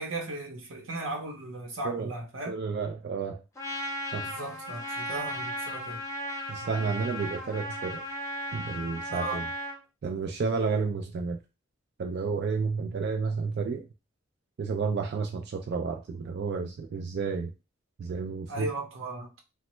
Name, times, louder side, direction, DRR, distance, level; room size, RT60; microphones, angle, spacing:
voice 1, 0.0-2.5 4.2-6.0 9.1-9.4 18.5-19.4, right 2 dB, 85° right, 0.8 m, -36 dB
voice 2, 2.5-3.4 4.1-4.3 6.5-8.0 8.5-9.4 10.0-11.4 12.0-13.8 14.6-17.5 18.0-18.7, right 5 dB, 55° right, 0.3 m, -31 dB
Trumpet, 3.6-9.8, equal, 15° left, 0.7 m, -36 dB
3.0 x 2.1 x 3.0 m
head